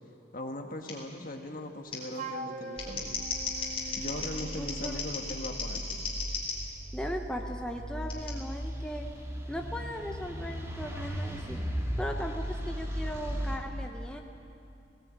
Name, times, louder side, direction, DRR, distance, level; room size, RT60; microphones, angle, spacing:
voice 1, 0.3-3.2 4.0-6.1, left 1 dB, 50° left, 4 dB, 1.5 m, -39 dB
Scissors, 0.9-1.0 1.9-2.0 2.6-6.6 8.1-8.3, left 5 dB, 30° left, 4.0 m, -35 dB
Wind instrument woodwind instrument, 2.1-5.0, right 2 dB, 40° right, 0.8 m, -42 dB
sound 1, 2.8-13.6, equal, 15° right, 2.2 m, -37 dB
voice 2, 4.6-5.1 6.9-9.1 9.5-11.6 12.0-14.2, equal, 5° left, 2 dB, 0.9 m, -38 dB
18.5 x 17.5 x 8.7 m, 2.8 s
head